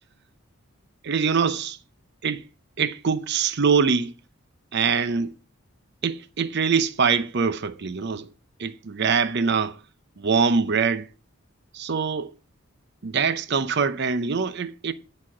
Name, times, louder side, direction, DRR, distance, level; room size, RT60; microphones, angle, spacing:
voice 1, 1.0-1.8 2.2-2.4 2.8-4.1 4.7-5.3 6.0-8.3 8.6-9.8 10.2-11.1 11.7-12.3 13.0-14.9, right 5 dB, 50° right, 0.6 m, -23 dB
10.0 x 4.2 x 6.0 m
head